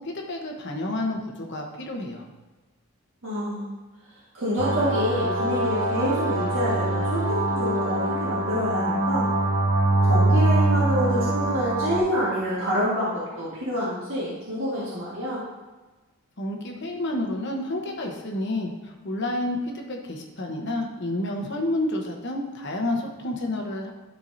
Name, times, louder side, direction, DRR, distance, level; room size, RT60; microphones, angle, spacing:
voice 1, 0.0-2.3 16.4-23.9, left 1 dB, 50° left, 1 dB, 1.1 m, -30 dB
voice 2, 3.2-3.7 4.3-9.3 10.0-15.4, equal, 60° right, -8 dB, 1.8 m, -27 dB
sound 1, 4.6-12.0, right 2 dB, 35° right, 1.7 m, -23 dB
11.5 x 4.6 x 2.7 m, 1.2 s
head